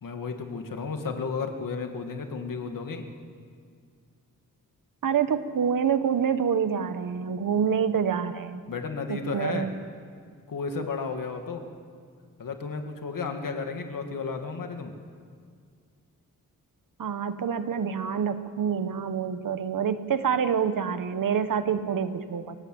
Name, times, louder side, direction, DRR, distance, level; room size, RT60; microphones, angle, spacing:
voice 1, 0.0-3.0 8.7-9.7 10.5-11.6 12.4-14.9, left 4 dB, 70° left, 5 dB, 2.3 m, -33 dB
voice 2, 5.0-8.6 9.1-9.7 17.0-22.6, right 7 dB, 70° right, 11 dB, 1.3 m, -27 dB
27.0 x 17.0 x 8.0 m, 2.1 s
wide cardioid pair, 120°, 34 cm